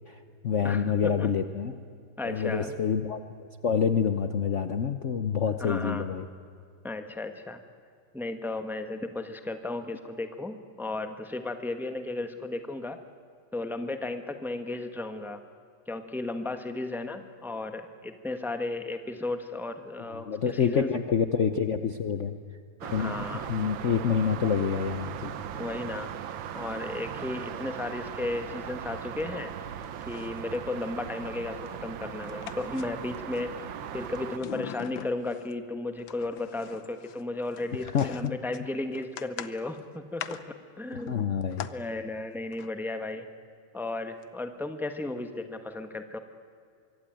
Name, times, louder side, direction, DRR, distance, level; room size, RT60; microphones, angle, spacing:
voice 1, 0.1-1.7 2.2-6.3 20.1-22.3 22.9-25.3 37.9-38.3 40.9-41.7, left 7 dB, 50° left, 8 dB, 1.0 m, -27 dB
voice 2, 0.6-1.3 2.2-2.8 5.6-6.1 6.8-7.6 8.1-13.0 13.5-15.4 15.9-20.9 22.8-23.5 25.6-26.1 26.5-29.5 30.1-41.3 41.7-43.3 43.7-46.2, left 2 dB, ahead, 7 dB, 1.1 m, -34 dB
sound 1, 22.8-34.4, right 9 dB, 85° right, 1.8 m, -38 dB
sound 2, 28.9-29.5 29.8-30.6 31.7-33.4 33.8-35.5 36.0-41.7 42.4-42.7 44.2-44.3 44.6-44.7, left 10 dB, 85° left, 1.7 m, -43 dB
24.5 x 23.5 x 9.2 m, 2.3 s
omnidirectional pair, 2.1 m